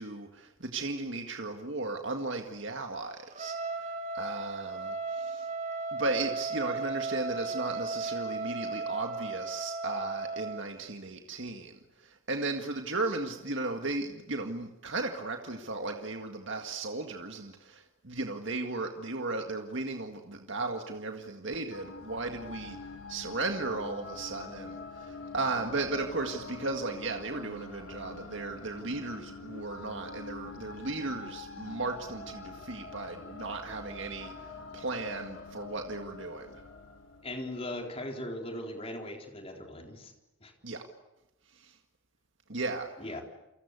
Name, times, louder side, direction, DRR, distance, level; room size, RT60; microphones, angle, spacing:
voice 1, 0.0-5.5 5.9-22.8 23.1-34.3 34.7-36.5 40.6-40.8 41.5-41.8 42.5-42.9, right 3 dB, 60° right, 4 dB, 1.9 m, -36 dB
Trumpet, 3.3-10.7, right 3 dB, 35° right, 2.7 m, -35 dB
sound 1, 21.7-37.9, left 3 dB, 65° left, 6.6 m, -45 dB
voice 2, 37.2-40.1 40.4-40.5 43.0-43.2, left 1 dB, 25° left, 3 dB, 4.0 m, -39 dB
29.5 x 24.0 x 8.3 m, 0.95 s
head